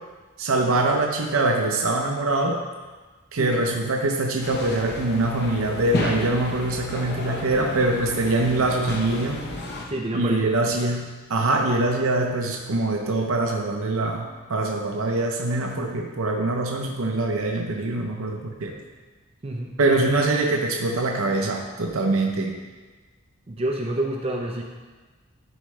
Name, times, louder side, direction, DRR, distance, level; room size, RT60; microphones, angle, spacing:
voice 1, 0.4-2.6 3.3-9.5 10.1-18.7 19.8-22.6, right 2 dB, 75° right, 1 dB, 0.7 m, -23 dB
sound 1, 4.4-9.9, left 2 dB, 50° left, 0.9 m, -32 dB
voice 2, 9.9-10.5 19.4-19.7 23.5-24.6, right 1 dB, 25° right, 0 dB, 0.5 m, -28 dB
11.0 x 4.7 x 3.2 m, 1.3 s
head